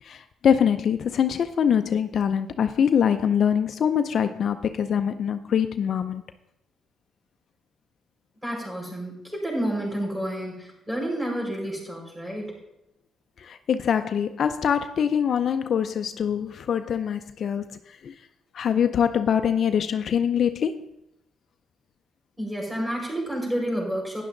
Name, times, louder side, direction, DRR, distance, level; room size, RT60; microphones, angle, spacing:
voice 1, 0.0-6.2 13.4-18.1 18.5-20.7, left 8 dB, 60° left, 9 dB, 0.5 m, -24 dB
voice 2, 8.4-12.5 22.4-24.2, right 1 dB, 10° right, -2 dB, 5.1 m, -30 dB
11.5 x 10.0 x 3.9 m, 0.85 s
cardioid pair, 90°, 0 cm